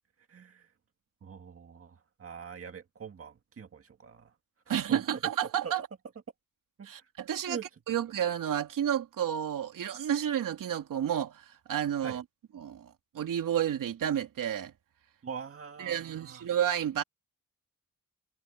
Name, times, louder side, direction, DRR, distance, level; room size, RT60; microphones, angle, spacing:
voice 1, 0.3-0.7 1.2-4.3 4.9-5.0 5.6-5.7 6.8-7.1 7.5-7.6 12.0-12.2 15.2-16.5, right 6 dB, 45° right, 2.0 m, -43 dB
voice 2, 4.7-5.8 6.8-7.6 7.9-12.2 12.5-14.7 15.8-17.0, right 10 dB, 85° right, 3.1 m, -31 dB
cardioid pair, 100°, 32 cm